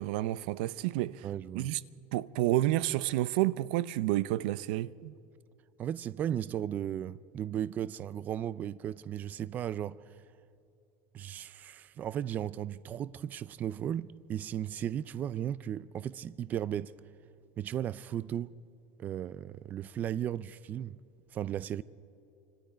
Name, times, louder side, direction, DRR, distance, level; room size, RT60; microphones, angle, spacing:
voice 1, 0.0-1.3 1.5-1.8 2.1-5.1, right 16 dB, 80° right, 0.6 m, -30 dB
voice 2, 1.2-1.7 5.8-10.0 11.1-16.9 17.6-18.5 19.0-20.9 21.3-21.8, right 10 dB, 30° right, 0.4 m, -35 dB
29.5 x 25.5 x 5.1 m
cardioid pair, 145°, 5 cm